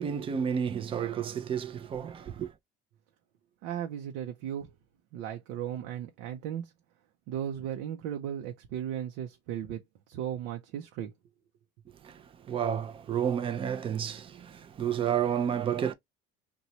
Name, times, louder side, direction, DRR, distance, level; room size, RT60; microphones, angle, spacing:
voice 1, 0.0-2.5 12.0-15.9, right 8 dB, 30° right, 0.5 m, -31 dB
voice 2, 3.6-4.7 5.1-6.7 7.3-11.1, right 10 dB, 85° right, 0.7 m, -36 dB
3.0 x 2.3 x 4.0 m
cardioid pair, 150°, 19 cm